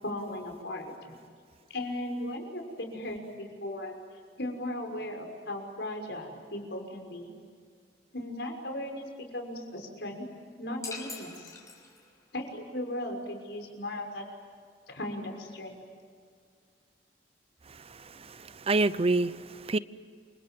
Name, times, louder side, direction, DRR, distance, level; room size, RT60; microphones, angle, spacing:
voice 1, 0.0-1.2 1.7-3.9 4.4-7.3 8.1-10.3 10.6-11.5 12.3-14.2 14.9-15.7, left 1 dB, 75° left, 3 dB, 6.2 m, -37 dB
sound 1, 10.8-12.3, left 3 dB, 20° left, 5.6 m, -43 dB
voice 2, 17.7-19.8, right 3 dB, 35° right, 15 dB, 0.7 m, -28 dB
29.0 x 26.5 x 7.8 m, 2.1 s
head